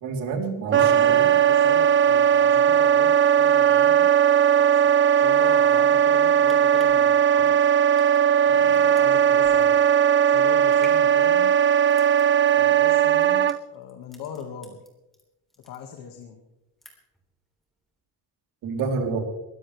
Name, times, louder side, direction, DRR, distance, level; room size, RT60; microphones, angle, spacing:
voice 1, 0.0-1.3 18.6-19.2, right 4 dB, 85° right, 2 dB, 3.8 m, -28 dB
voice 2, 0.7-4.1 4.6-4.9 5.2-7.7 8.5-9.8 10.2-11.6 12.5-14.8 15.6-16.4, left 7 dB, 85° left, 4 dB, 2.1 m, -40 dB
Wind instrument woodwind instrument, 0.7-13.6, right 9 dB, 35° right, 0.5 m, -18 dB
sound 1, 6.5-15.2 15.5-16.3 16.6-17.3 17.6-17.7, equal, ahead, 3.4 m, -50 dB
22.5 x 17.0 x 3.5 m, 0.98 s
cardioid pair, 165°, 33 cm